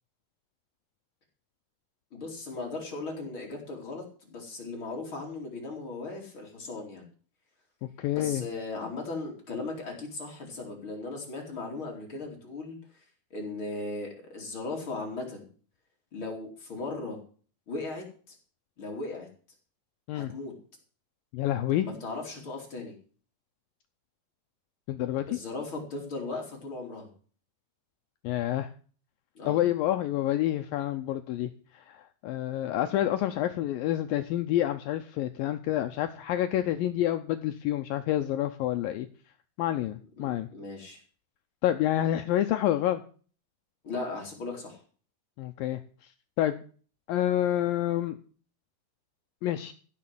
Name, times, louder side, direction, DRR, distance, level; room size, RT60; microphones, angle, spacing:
voice 1, 2.1-7.0 8.1-12.8 13.3-15.5 16.1-17.2 17.7-18.3 18.8-19.3 20.1-20.5 21.8-22.9 25.3-27.1 29.3-29.6 40.2-41.0 43.8-44.8, left 3 dB, 35° left, -1 dB, 3.4 m, -37 dB
voice 2, 8.0-8.4 20.1-20.3 21.3-21.9 24.9-25.4 28.2-28.7 29.5-39.1 39.6-40.5 41.6-43.0 45.4-45.8 46.4-46.6 47.1-48.2 49.4-49.7, left 12 dB, 75° left, 7 dB, 2.2 m, -28 dB
15.0 x 6.6 x 7.6 m, 0.42 s
omnidirectional pair, 4.7 m